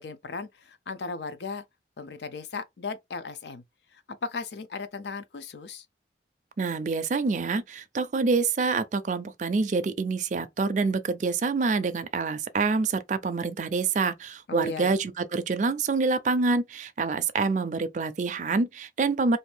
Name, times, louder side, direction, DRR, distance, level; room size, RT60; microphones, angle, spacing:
voice 1, 0.0-1.6 2.0-3.6 3.9-5.9 14.5-15.0, left 4 dB, 75° left, 0.5 m, -36 dB
voice 2, 6.6-19.4, right 4 dB, 45° right, 0.4 m, -26 dB
2.6 x 2.5 x 3.3 m
head